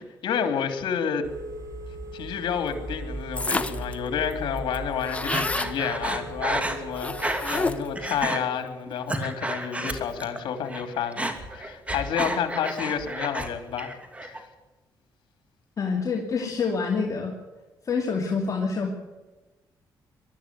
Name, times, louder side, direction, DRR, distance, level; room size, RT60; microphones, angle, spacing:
voice 1, 0.2-1.3 2.1-13.9 14.2-14.4, left 7 dB, 75° left, 7 dB, 3.1 m, -30 dB
Telephone, 1.2-8.2, right 2 dB, 40° right, 5.5 m, -38 dB
sound 1, 3.4-3.9 4.3-4.4 4.6-5.7 7.0-8.0, left 2 dB, 15° left, 1.1 m, -29 dB
Breathing, 5.3-7.7 8.0-8.4 8.9-10.4 10.7-13.5 13.8-14.4, right 1 dB, 15° right, 2.7 m, -31 dB
voice 2, 15.8-17.4 17.8-18.9, left 5 dB, 40° left, 1 dB, 2.6 m, -26 dB
21.5 x 13.0 x 9.6 m, 1.2 s
cardioid pair, 90°, 8 cm